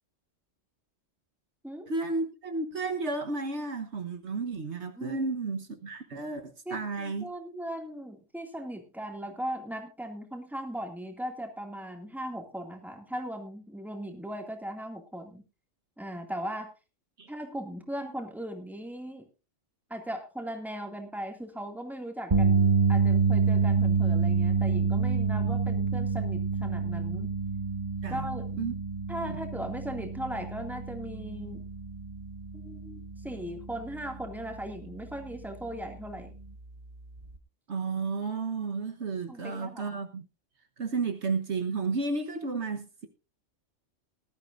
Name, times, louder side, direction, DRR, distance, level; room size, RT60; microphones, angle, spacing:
voice 1, 1.9-7.3 17.2-17.3 25.5-25.6 28.0-28.3 28.6-28.7 29.2-29.4 37.7-40.2 40.8-43.1, right 4 dB, 65° right, 1.5 m, -32 dB
voice 2, 5.0-5.3 6.7-15.4 16.0-16.7 17.3-19.3 19.9-27.3 28.1-28.5 29.1-31.6 32.5-36.4 39.3-40.0, equal, ahead, 2.2 m, -38 dB
sound 1, 22.3-34.6 34.9-35.2 37.3-37.4, right 5 dB, 30° right, 1.1 m, -27 dB
19.0 x 12.5 x 2.6 m
omnidirectional pair, 1.3 m